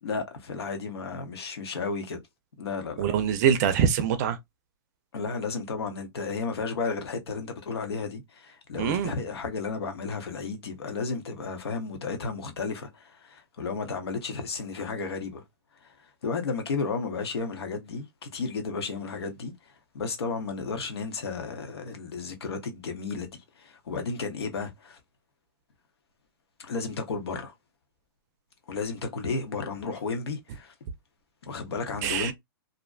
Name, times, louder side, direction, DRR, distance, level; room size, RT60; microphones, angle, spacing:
voice 1, 0.0-2.2 2.6-3.1 5.1-15.4 15.8-15.9 16.2-19.5 19.9-23.3 23.6-25.0 26.6-27.5 28.7-30.7 31.4-32.3, left 4 dB, 85° left, 0.9 m, -33 dB
voice 2, 3.0-4.4 8.8-9.1 32.0-32.3, right 8 dB, 40° right, 0.4 m, -24 dB
2.5 x 2.1 x 2.3 m
hypercardioid pair, 140°, 13 cm